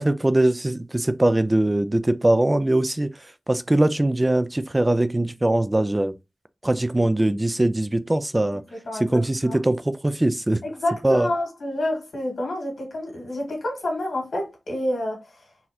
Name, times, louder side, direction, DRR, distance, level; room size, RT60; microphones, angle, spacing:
voice 1, 0.0-3.1 3.5-6.1 6.6-8.6 8.9-10.6 11.0-11.3, right 1 dB, 20° right, 0.3 m, -21 dB
voice 2, 8.5-9.6 10.6-15.4, left 1 dB, 80° left, 1.7 m, -29 dB
3.9 x 2.6 x 2.8 m
wide cardioid pair, 90°, 0 cm